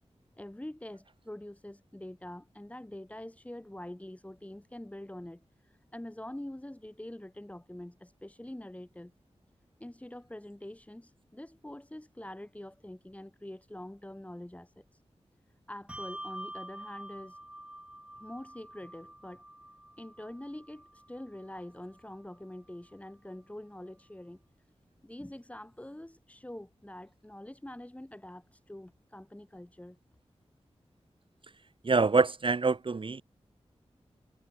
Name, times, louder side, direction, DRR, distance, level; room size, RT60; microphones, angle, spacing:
voice 1, 0.4-9.1 9.8-15.0 15.7-17.4 18.2-19.4 20.0-24.4 25.0-30.0, left 1 dB, 10° left, 3.6 m, -45 dB
Bell, 15.9-22.7, right 1 dB, 10° right, 1.9 m, -47 dB
voice 2, 31.8-33.2, right 4 dB, 50° right, 1.1 m, -25 dB
wide cardioid pair, 90°, 11 cm